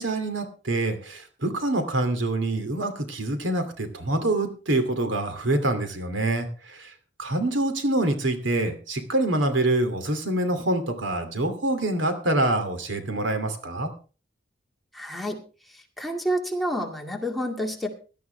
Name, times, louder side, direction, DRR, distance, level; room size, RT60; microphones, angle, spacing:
voice 1, 0.0-6.5 6.8-6.9 7.2-13.9, right 2 dB, 90° right, 7 dB, 2.7 m, -25 dB
voice 2, 14.9-15.4 15.7-17.9, equal, ahead, 1 dB, 2.1 m, -29 dB
17.5 x 12.0 x 3.4 m, 0.35 s
head